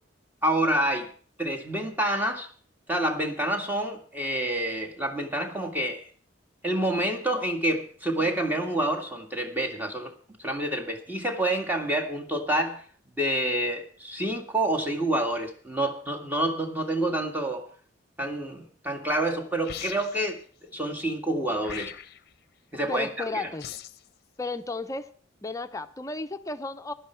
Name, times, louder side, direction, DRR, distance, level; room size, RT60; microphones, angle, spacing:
voice 1, 0.4-1.1 1.4-2.5 2.9-6.1 6.6-10.1 10.4-12.8 13.2-17.7 18.2-22.0 22.7-23.4, right 1 dB, 10° right, 2 dB, 1.8 m, -28 dB
sound 1, 19.6-20.3 21.6-22.3 23.6-24.1, left 10 dB, 55° left, 0.7 m, -40 dB
voice 2, 22.9-23.7 24.4-25.1 25.4-26.9, left 3 dB, 20° left, 9 dB, 0.7 m, -33 dB
16.5 x 11.5 x 4.5 m, 0.43 s
head